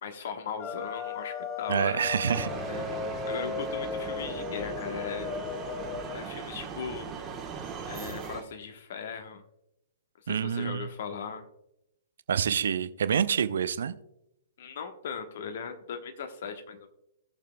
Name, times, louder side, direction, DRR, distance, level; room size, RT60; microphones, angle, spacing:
voice 1, 0.0-2.0 2.7-2.8 3.3-5.3 6.1-7.1 7.9-9.4 10.2-11.4 14.6-16.9, left 6 dB, 50° left, 7 dB, 1.2 m, -38 dB
sound 1, 0.6-6.2, left 6 dB, 20° left, 0.8 m, -36 dB
voice 2, 1.7-2.5 10.3-10.9 12.3-13.9, right 7 dB, 60° right, 14 dB, 0.5 m, -27 dB
sound 2, 2.3-8.4, right 6 dB, 20° right, 1.3 m, -39 dB
17.5 x 6.7 x 2.3 m, 0.83 s
figure-of-eight pair, 115°, 0 cm